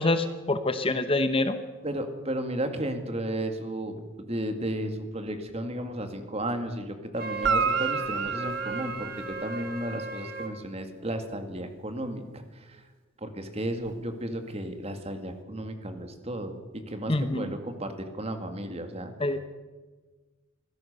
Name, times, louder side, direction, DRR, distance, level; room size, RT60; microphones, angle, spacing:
voice 1, 0.0-1.6 17.1-17.5 19.2-19.4, left 2 dB, 25° left, 10 dB, 0.9 m, -26 dB
voice 2, 1.8-12.8 13.2-16.6 16.9-19.1, right 1 dB, 30° right, 7 dB, 2.2 m, -34 dB
Wind instrument woodwind instrument, 7.2-10.5, right 3 dB, 45° right, 2.3 m, -36 dB
Guitar, 7.4-10.0 13.8-13.9, right 5 dB, 65° right, 1.0 m, -30 dB
24.5 x 17.0 x 6.8 m, 1.3 s
head